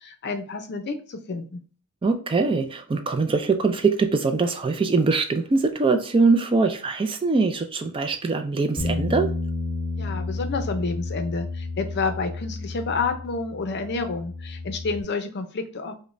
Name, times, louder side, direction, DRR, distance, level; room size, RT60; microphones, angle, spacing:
voice 1, 0.0-1.6 10.0-15.9, left 4 dB, 50° left, 7 dB, 0.6 m, -29 dB
voice 2, 2.0-9.3, right 4 dB, 25° right, 8 dB, 0.3 m, -22 dB
Bass guitar, 8.8-15.0, left 2 dB, 20° left, 0.8 m, -31 dB
5.0 x 2.1 x 2.5 m, 0.40 s
head